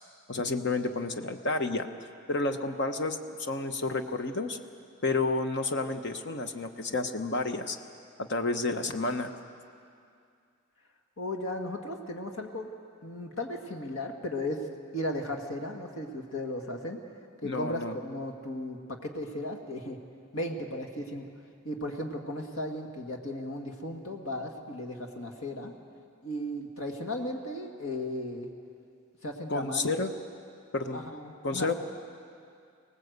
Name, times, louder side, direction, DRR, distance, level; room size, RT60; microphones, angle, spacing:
voice 1, 0.3-1.9 2.3-4.6 5.0-7.8 8.2-9.3 17.4-17.9 29.5-30.1 30.7-31.0 31.4-31.7, left 3 dB, 55° left, 7 dB, 1.0 m, -30 dB
voice 2, 11.2-12.7 13.0-14.6 14.9-17.0 17.4-20.0 20.3-21.3 21.6-25.7 26.2-28.5 29.2-30.1 30.9-31.8, left 1 dB, 70° left, 3 dB, 2.0 m, -36 dB
25.0 x 18.5 x 8.1 m, 2.4 s
head